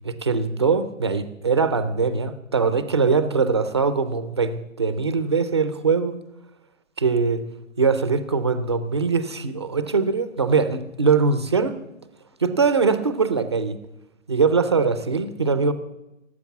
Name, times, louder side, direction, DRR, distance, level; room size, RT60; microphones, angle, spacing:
voice 1, 0.0-6.2 7.0-7.4 7.8-11.7 12.4-13.8 14.3-15.7, right 5 dB, 25° right, 12 dB, 0.4 m, -22 dB
18.0 x 8.0 x 7.1 m, 0.96 s
hypercardioid pair, 155°, 39 cm